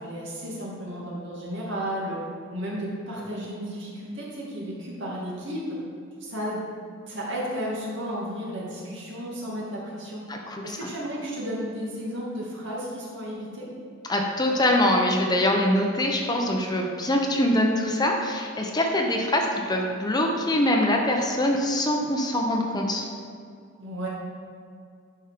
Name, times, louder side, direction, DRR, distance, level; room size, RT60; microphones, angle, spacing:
voice 1, 0.0-2.2 2.5-5.8 6.2-6.7 7.1-10.2 10.6-13.7 23.8-24.1, equal, 65° right, -5 dB, 2.5 m, -33 dB
voice 2, 10.3-10.9 14.1-23.1, left 1 dB, 20° left, 1 dB, 0.8 m, -24 dB
11.0 x 5.3 x 5.1 m, 2.3 s
head